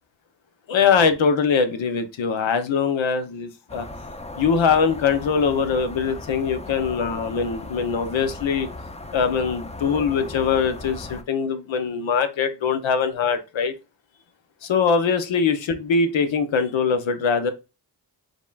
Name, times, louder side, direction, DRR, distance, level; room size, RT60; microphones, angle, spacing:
voice 1, 0.7-3.9 4.4-8.7 9.1-13.7 14.6-17.5, left 6 dB, 85° left, 0.8 m, -22 dB
sound 1, 3.7-11.2, left 2 dB, 15° left, 0.5 m, -37 dB
5.3 x 3.7 x 2.3 m
cardioid pair, 50°, 45 cm